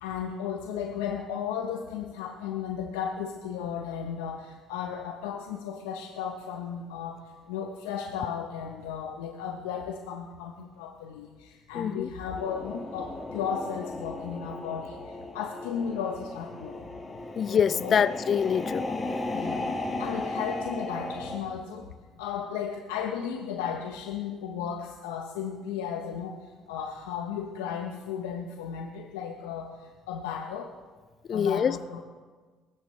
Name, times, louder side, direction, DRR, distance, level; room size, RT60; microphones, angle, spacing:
voice 1, 0.0-7.2 7.5-15.0 15.3-16.8 17.8-18.0 19.3-19.7 20.0-21.9 22.2-26.4 26.7-29.7 30.1-30.7 31.3-32.0, left 7 dB, 85° left, 3 dB, 1.0 m, -34 dB
voice 2, 11.7-12.1 17.4-18.8 31.3-31.8, left 7 dB, 50° left, 15 dB, 0.5 m, -25 dB
sound 1, 12.3-21.4, left 2 dB, 30° left, 4.2 m, -35 dB
22.5 x 12.5 x 3.3 m, 1.4 s
hypercardioid pair, 60°, 0 cm